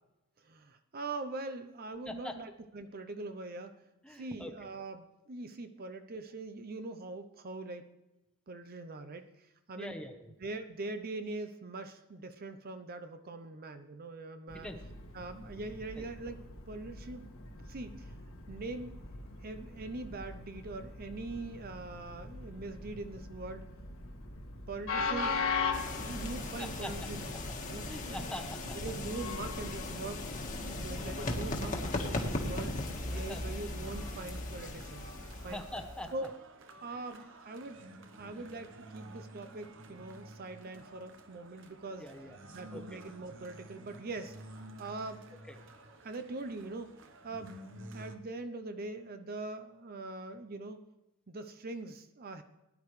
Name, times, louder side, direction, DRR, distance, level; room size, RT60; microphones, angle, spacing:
voice 1, 0.4-3.8 4.1-7.8 8.5-10.0 10.4-14.7 15.1-16.4 16.7-17.3 17.6-18.1 18.5-19.1 19.4-23.7 24.7-25.7 26.0-27.3 27.7-28.3 28.7-30.3 30.7-32.8 33.1-35.1 35.4-35.6 36.1-36.3 36.8-42.1 42.5-45.2 46.0-47.6 47.9-50.8 51.3-52.4, right 2 dB, 45° right, 9 dB, 0.7 m, -42 dB
voice 2, 2.1-2.4 4.0-4.5 9.7-10.3 14.6-14.8 16.0-16.1 26.6-26.9 27.9-28.8 33.1-33.4 35.4-36.1 36.9-37.1 38.2-38.4 42.0-42.4 42.7-43.0 45.5-45.6, left 1 dB, 5° left, 4 dB, 1.0 m, -43 dB
Train, 14.5-33.0, left 4 dB, 70° left, 1.7 m, -41 dB
sound 1, 25.7-36.1, left 1 dB, 40° left, 1.6 m, -38 dB
sound 2, 33.8-48.2, right 1 dB, 60° right, 1.0 m, -51 dB
18.0 x 10.5 x 3.2 m, 0.96 s
head